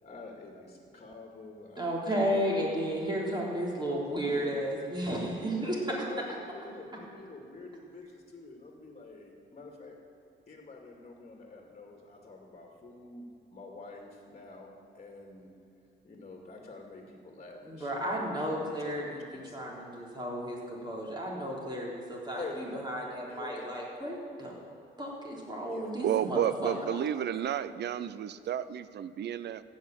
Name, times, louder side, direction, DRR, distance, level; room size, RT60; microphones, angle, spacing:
voice 1, 0.0-2.9 4.0-4.7 5.6-10.0 10.5-13.3 13.5-15.5 16.0-19.0 19.4-19.6 22.3-22.7 23.3-23.7 25.7-25.9 26.7-28.4, left 3 dB, 35° left, 1 dB, 2.2 m, -47 dB
voice 2, 1.8-5.8 17.6-24.5 25.0-26.7, equal, 20° right, -3 dB, 3.7 m, -33 dB
voice 3, 26.0-29.6, right 10 dB, 60° right, 15 dB, 0.6 m, -31 dB
15.0 x 5.9 x 9.1 m, 2.4 s
cardioid pair, 90°, 20 cm